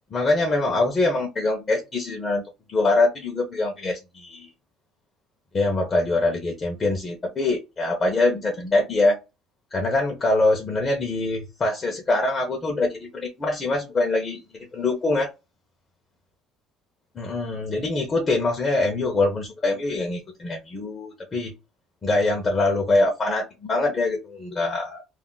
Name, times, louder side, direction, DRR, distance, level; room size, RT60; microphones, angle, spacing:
voice 1, 0.1-2.4 2.7-4.5 5.5-9.2 9.7-14.4 14.7-15.3 17.2-21.5 22.0-25.0, left 2 dB, 30° left, 0.7 m, -24 dB
2.4 x 2.0 x 3.7 m
cardioid pair, 125°, 0 cm